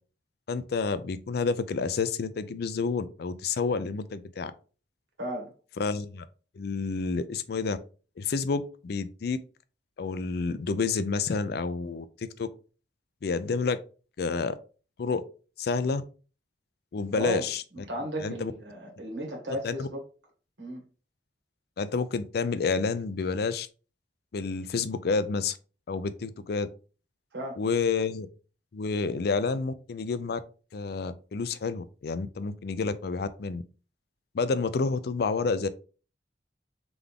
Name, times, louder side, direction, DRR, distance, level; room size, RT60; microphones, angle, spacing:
voice 1, 0.5-4.5 5.8-6.3 6.6-7.8 8.2-9.4 10.0-12.5 13.2-13.8 14.2-14.6 15.0-15.2 15.6-16.0 16.9-17.6 18.2-18.5 19.6-19.9 21.8-23.7 24.3-25.6 25.9-26.7 27.6-28.3 28.7-30.4 30.7-33.6 34.3-35.7, left 4 dB, 60° left, 0.4 m, -29 dB
voice 2, 5.2-5.5 17.1-17.4 17.7-20.0 20.6-20.8 27.3-27.6, equal, 85° right, 1.7 m, -34 dB
3.7 x 3.5 x 3.5 m
head